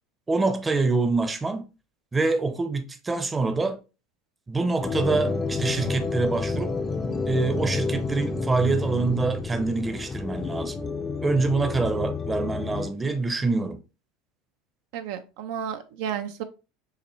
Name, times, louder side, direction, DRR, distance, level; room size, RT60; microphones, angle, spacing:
voice 1, 0.3-1.7 2.1-3.8 4.5-6.7 7.3-10.8 11.2-13.8, right 3 dB, 15° right, 0.6 m, -25 dB
sound 1, 4.8-12.9, left 4 dB, 25° left, 0.5 m, -29 dB
voice 2, 14.9-16.4, right 8 dB, 70° right, 0.4 m, -32 dB
5.6 x 2.1 x 3.0 m
hypercardioid pair, 95°, 0 cm